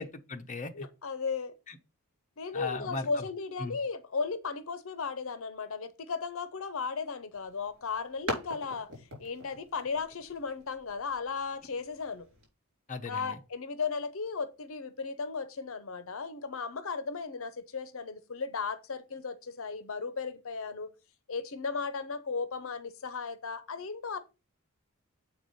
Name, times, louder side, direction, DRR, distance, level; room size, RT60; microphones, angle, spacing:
voice 1, 0.0-0.9 1.7-1.8 2.5-3.2 3.6-3.8 12.9-13.4, left 4 dB, 35° left, 0.9 m, -37 dB
voice 2, 0.7-1.5 2.4-12.3 13.1-20.9 21.3-24.2, left 5 dB, 70° left, 0.7 m, -36 dB
sound 1, 7.3-12.5, equal, 65° right, 4.5 m, -43 dB
7.4 x 4.8 x 5.4 m
head